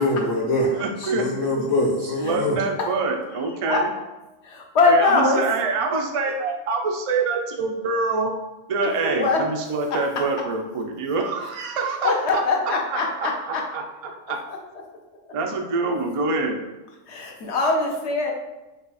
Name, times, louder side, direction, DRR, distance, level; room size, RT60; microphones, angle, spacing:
voice 1, 0.0-0.7 1.1-2.6, left 1 dB, 80° left, -4 dB, 1.4 m, -23 dB
voice 2, 0.7-1.5 2.0-3.9 4.9-8.3 8.7-14.4 15.3-16.6, right 3 dB, 50° right, 3 dB, 0.4 m, -26 dB
voice 3, 4.7-5.4 9.0-9.4 12.0-13.6 17.1-18.3, left 3 dB, 65° left, 0 dB, 1.0 m, -21 dB
5.1 x 2.3 x 4.1 m, 1.0 s
omnidirectional pair, 1.3 m